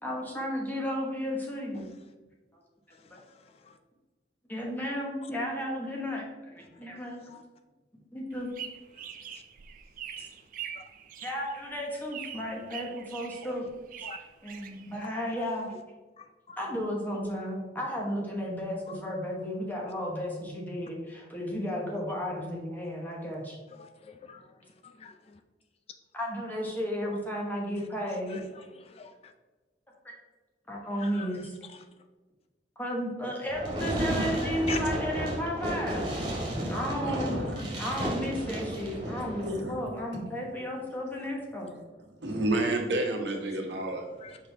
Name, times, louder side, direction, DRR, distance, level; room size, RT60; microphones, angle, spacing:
voice 1, 0.0-1.8 4.5-7.2 8.1-8.5 11.2-13.7 14.4-15.7 16.6-23.6 26.1-28.4 30.0-30.2 30.7-31.4 32.8-36.1 36.7-37.4 37.8-41.7, equal, 10° left, -2 dB, 1.2 m, -33 dB
voice 2, 2.9-3.8 5.2-5.3 6.7-7.4 9.0-9.4 10.2-10.3 10.8-10.9 14.0-14.2 15.3-15.5 16.2-16.6 18.9-19.0 23.7-25.4 27.0-27.2 28.3-29.3 30.9-31.8 34.1-34.8 43.6-44.4, left 5 dB, 35° left, 7 dB, 0.4 m, -45 dB
sound 1, 8.3-15.3, right 9 dB, 50° right, 0.4 m, -44 dB
Fireworks, 33.5-39.5, equal, 25° right, 1.9 m, -34 dB
voice 3, 33.8-34.3 34.6-34.8 36.0-38.0 38.4-39.7 42.2-44.1, right 1 dB, 80° right, 2 dB, 1.2 m, -32 dB
5.6 x 5.0 x 3.4 m, 1.2 s
head